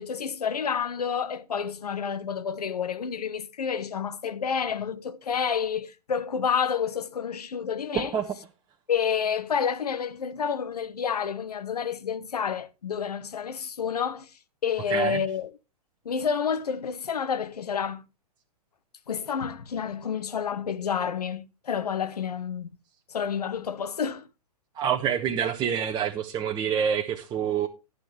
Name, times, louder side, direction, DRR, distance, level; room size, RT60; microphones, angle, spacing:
voice 1, 0.0-8.2 8.9-14.3 14.6-15.5 16.0-18.0 19.1-22.7 23.1-24.3, left 7 dB, 75° left, 1.0 m, -29 dB
voice 2, 7.9-8.3 14.9-15.2 24.8-27.7, right 8 dB, 20° right, 1.0 m, -27 dB
11.5 x 9.1 x 3.3 m
figure-of-eight pair, 110°, 20 cm